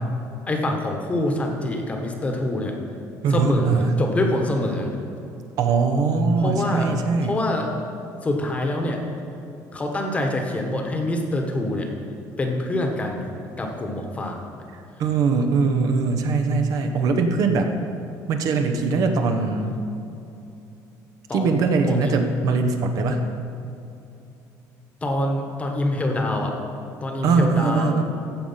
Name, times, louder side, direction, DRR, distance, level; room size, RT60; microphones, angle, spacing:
voice 1, 0.5-2.7 3.3-4.9 6.4-6.9 7.2-7.8 8.2-9.0 9.7-11.9 12.4-13.2 13.6-14.5 21.3-22.2 25.0-26.6 27.0-28.0, left 1 dB, 20° left, 2 dB, 1.2 m, -25 dB
voice 2, 3.2-3.9 5.6-7.4 14.7-17.7 18.3-19.8 21.3-23.2 27.2-28.0, right 4 dB, 55° right, 5 dB, 0.9 m, -21 dB
15.0 x 5.2 x 5.6 m, 2.7 s
cardioid pair, 150°, 7 cm